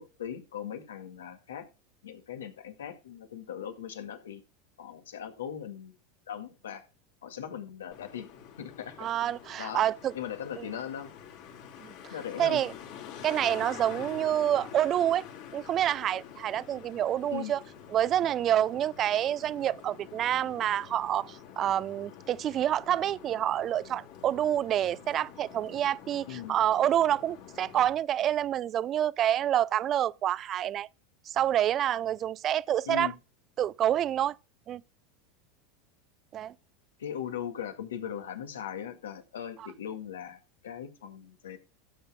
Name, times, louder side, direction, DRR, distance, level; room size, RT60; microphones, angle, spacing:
voice 1, 0.0-1.7 2.0-4.4 4.8-5.9 6.3-6.8 7.2-8.3 8.6-9.3 9.6-9.8 10.1-11.1 12.1-12.6 17.3-17.5 26.3-26.5 32.9-33.1 37.0-41.6, left 9 dB, 80° left, 1.9 m, -39 dB
Traffic noise roadway noise, 7.9-27.9, left 8 dB, 60° left, 3.9 m, -47 dB
voice 2, 9.0-10.1 10.6-10.7 11.8-11.9 12.4-12.7 13.2-15.3 15.5-17.6 17.9-30.9 31.3-33.1 33.6-34.4 34.7-34.8 36.3-36.5 39.6-39.7, right 11 dB, 40° right, 0.5 m, -28 dB
17.0 x 8.0 x 2.2 m
hypercardioid pair, 85°, 0 cm